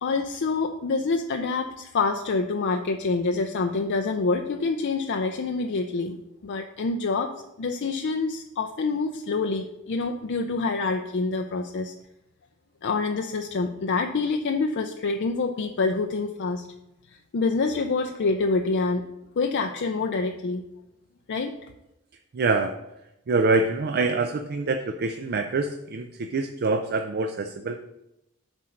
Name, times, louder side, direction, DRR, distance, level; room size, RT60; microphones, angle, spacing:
voice 1, 0.0-6.2 6.4-7.3 7.6-11.9 12.8-16.7 17.3-19.0 19.4-20.7 21.3-21.6, left 4 dB, 55° left, 5 dB, 0.5 m, -26 dB
voice 2, 22.3-22.7 23.3-27.8, right 3 dB, 45° right, 7 dB, 0.4 m, -25 dB
7.5 x 4.4 x 6.4 m, 0.89 s
head